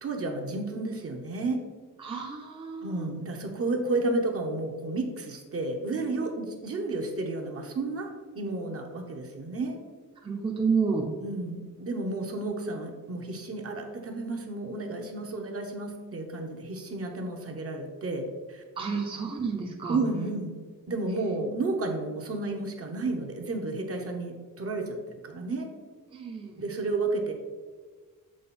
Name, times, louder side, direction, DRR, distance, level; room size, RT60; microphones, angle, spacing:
voice 1, 0.0-1.6 2.8-8.1 8.3-9.8 11.2-18.2 18.5-18.6 18.9-19.0 19.9-20.5 20.9-25.7 26.6-27.3, right 2 dB, 40° right, 2 dB, 1.0 m, -32 dB
voice 2, 2.0-3.1 10.2-11.1 18.8-20.0 26.1-26.6, right 5 dB, 15° right, -1 dB, 0.7 m, -30 dB
7.6 x 4.4 x 4.3 m, 1.4 s
wide cardioid pair, 160°, 34 cm